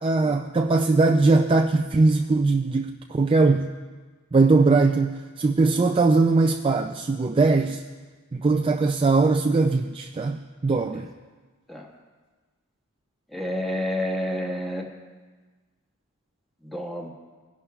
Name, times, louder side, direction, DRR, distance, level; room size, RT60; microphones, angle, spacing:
voice 1, 0.0-3.7 4.3-7.8 8.3-11.1, right 3 dB, 25° right, 4 dB, 0.3 m, -20 dB
voice 2, 13.3-14.8 16.6-17.1, left 1 dB, ahead, -2 dB, 1.5 m, -29 dB
19.5 x 11.0 x 2.4 m, 1.4 s
head